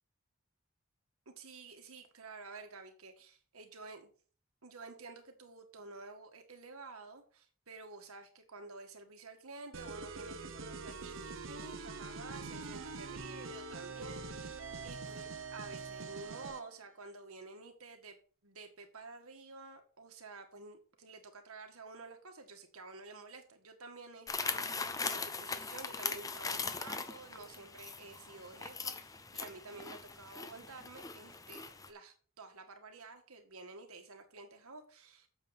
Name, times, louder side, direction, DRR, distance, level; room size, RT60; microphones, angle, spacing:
voice 1, 1.2-4.1 4.6-35.3, right 3 dB, 85° right, 1.7 m, -51 dB
sound 1, 9.7-16.7, right 4 dB, 60° right, 1.0 m, -44 dB
sound 2, 24.3-31.9, left 4 dB, 15° left, 0.5 m, -40 dB
8.9 x 6.9 x 4.1 m
head